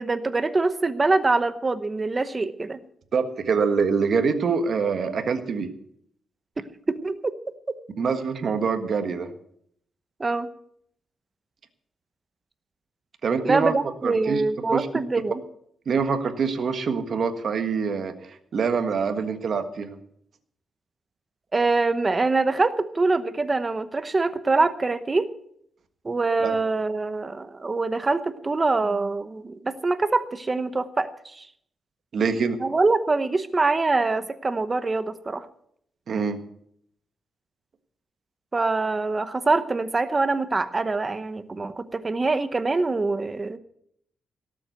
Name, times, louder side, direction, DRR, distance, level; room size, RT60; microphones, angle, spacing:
voice 1, 0.0-2.8 6.6-7.2 10.2-10.5 13.4-15.4 21.5-25.3 26.0-31.1 31.4-31.5 32.6-35.5 38.5-43.6, right 3 dB, 20° right, 11 dB, 0.9 m, -24 dB
voice 2, 3.1-5.7 8.0-9.3 13.2-13.7 14.0-14.4 14.7-14.9 15.8-18.1 18.5-20.0 26.4-26.6 32.1-32.6 36.1-36.4, right 5 dB, 45° right, 7 dB, 1.5 m, -25 dB
17.5 x 7.5 x 8.0 m, 0.68 s
wide cardioid pair, 180°, 0 cm